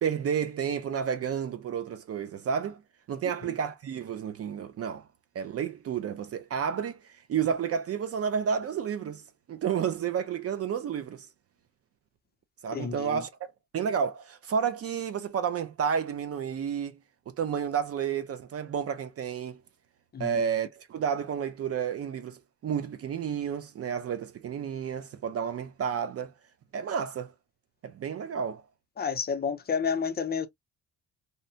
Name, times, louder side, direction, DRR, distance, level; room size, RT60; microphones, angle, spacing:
voice 1, 0.0-2.8 3.1-5.0 5.3-7.0 7.3-9.2 9.5-11.3 12.6-13.3 13.7-17.0 17.4-19.6 20.2-26.3 26.7-27.3 27.8-28.6, right 7 dB, 45° right, 0.4 m, -31 dB
voice 2, 12.7-13.2 20.1-20.4 29.0-30.5, left 6 dB, 30° left, 0.6 m, -30 dB
2.7 x 2.1 x 2.6 m
cardioid pair, 115°, 35 cm